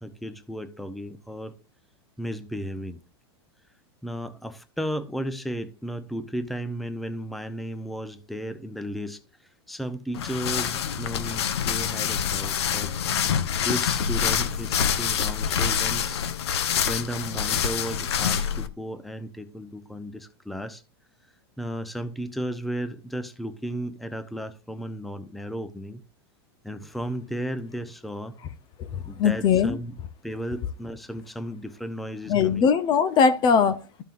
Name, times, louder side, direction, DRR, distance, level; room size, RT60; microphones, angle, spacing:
voice 1, 0.0-1.5 2.2-3.0 4.0-9.2 9.7-12.9 13.6-16.3 16.9-20.8 21.6-26.0 26.6-28.3 29.1-30.0 30.2-32.7, equal, ahead, 0.7 m, -34 dB
sound 1, 10.1-18.7, left 8 dB, 85° left, 0.8 m, -26 dB
voice 2, 29.2-29.8 32.3-34.0, left 6 dB, 35° left, 0.7 m, -20 dB
13.5 x 5.4 x 2.5 m
supercardioid pair, 135°, 14 cm